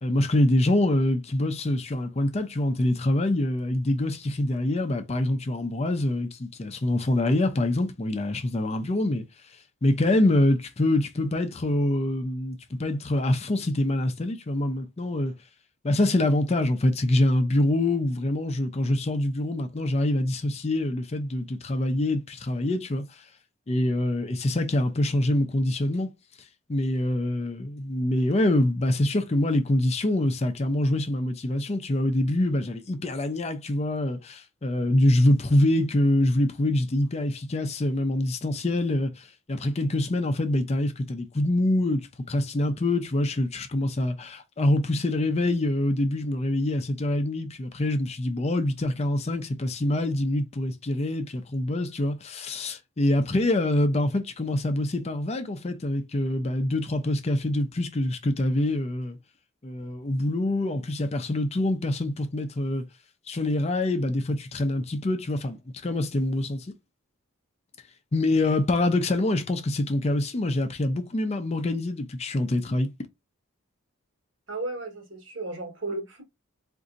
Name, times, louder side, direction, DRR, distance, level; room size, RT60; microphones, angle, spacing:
voice 1, 0.0-9.2 9.8-15.3 15.8-23.0 23.7-26.1 26.7-59.2 59.6-62.8 63.3-66.7 68.1-72.9, left 1 dB, 30° left, 0.4 m, -25 dB
voice 2, 74.5-76.2, right 2 dB, 60° right, 1.3 m, -34 dB
4.0 x 2.6 x 2.5 m
head